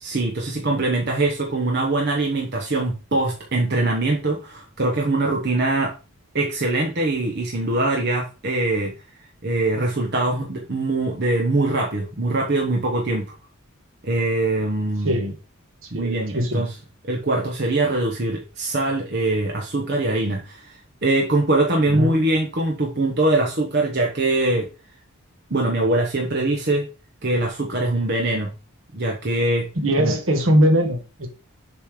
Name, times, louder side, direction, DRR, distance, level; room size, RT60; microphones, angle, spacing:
voice 1, 0.0-5.9 6.3-8.9 9.4-13.3 14.0-15.3 15.9-16.7 17.1-20.7 21.0-24.7 25.5-26.9 27.2-28.5 28.9-29.7 30.0-30.2, right 2 dB, 50° right, 1.0 m, -22 dB
voice 2, 15.9-16.6 21.9-22.1 29.8-31.3, equal, 65° right, 1.4 m, -20 dB
7.1 x 3.2 x 4.8 m
head